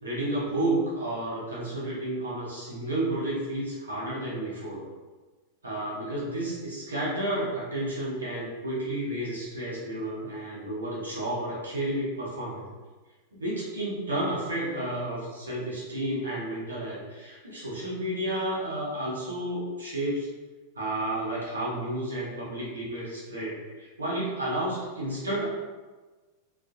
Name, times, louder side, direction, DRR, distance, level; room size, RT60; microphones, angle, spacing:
voice 1, 0.0-4.8 5.6-12.6 13.3-20.3 20.7-25.5, right 1 dB, 75° right, -6 dB, 1.0 m, -31 dB
3.0 x 2.5 x 2.5 m, 1.3 s
figure-of-eight pair, 90°, 0 cm